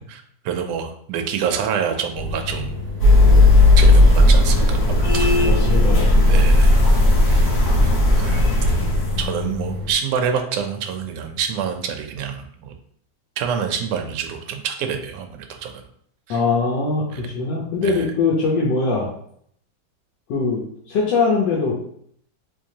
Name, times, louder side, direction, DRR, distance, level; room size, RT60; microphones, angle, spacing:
voice 1, 0.1-2.8 3.8-5.5 6.2-6.7 7.3-8.5 9.2-12.7 13.4-15.8 16.3-16.4 17.1-17.2 17.8-18.1, right 7 dB, 75° right, 5 dB, 1.1 m, -27 dB
sound 1, 2.1-9.9, left 2 dB, 40° right, 1.2 m, -31 dB
sound 2, 3.0-9.3, left 1 dB, 60° left, 1.5 m, -14 dB
voice 2, 5.4-6.4 16.3-19.1 20.3-20.6 20.9-21.8, left 4 dB, 85° left, -4 dB, 1.4 m, -22 dB
3.6 x 3.2 x 2.7 m, 0.65 s
omnidirectional pair, 1.9 m